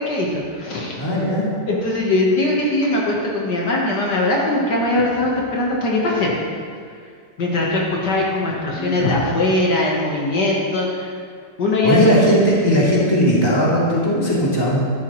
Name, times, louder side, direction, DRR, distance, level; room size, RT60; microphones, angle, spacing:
voice 1, 0.0-1.0 1.7-6.3 7.4-11.1 11.6-12.2, left 2 dB, 65° left, -3 dB, 2.0 m, -20 dB
voice 2, 1.0-1.5 8.8-9.2 11.8-14.8, equal, 10° left, -8 dB, 2.9 m, -18 dB
13.0 x 11.0 x 3.1 m, 2.1 s
omnidirectional pair, 1.9 m